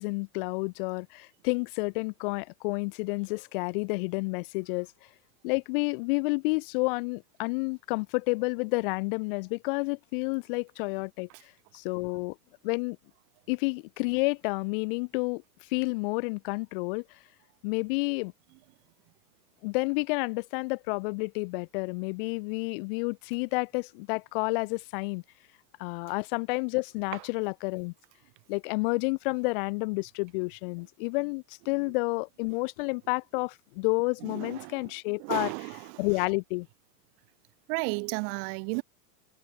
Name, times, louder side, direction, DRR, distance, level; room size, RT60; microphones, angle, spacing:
voice 1, 0.0-4.9 5.4-11.3 11.7-12.4 12.6-13.0 13.5-15.4 15.7-17.0 17.6-18.3 19.6-25.2 25.8-27.9 28.5-35.5 36.0-36.7, left 28 dB, 35° left, 2.0 m, -30 dB
voice 2, 34.2-34.9 35.2-36.0 37.7-38.8, right 40 dB or more, 35° right, 3.4 m, -33 dB
supercardioid pair, 175°, 47 cm